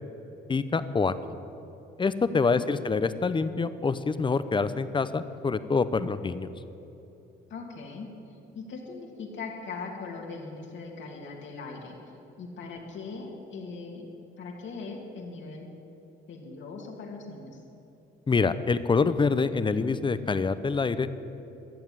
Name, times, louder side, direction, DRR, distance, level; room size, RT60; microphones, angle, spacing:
voice 1, 0.5-1.1 2.0-6.5 18.3-21.1, left 4 dB, 25° left, 13 dB, 0.7 m, -26 dB
voice 2, 2.3-2.6 7.5-8.1 8.5-11.9 12.4-14.1 14.4-15.7 16.3-17.6, left 4 dB, 70° left, 0 dB, 2.6 m, -40 dB
13.5 x 7.3 x 9.7 m, 2.9 s
cardioid pair, 90°, 20 cm